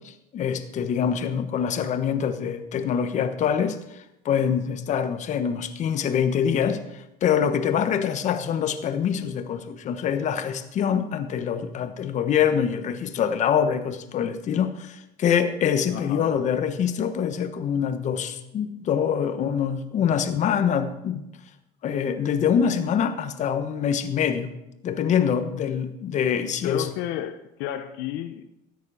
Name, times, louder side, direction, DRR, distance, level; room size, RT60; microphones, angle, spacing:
voice 1, 0.0-21.2 21.8-24.5 24.8-26.9, left 8 dB, 50° left, 1.2 m, -25 dB
voice 2, 15.9-16.3 26.6-28.5, left 12 dB, 85° left, 0.8 m, -32 dB
13.5 x 9.6 x 4.9 m
cardioid pair, 120°, 16 cm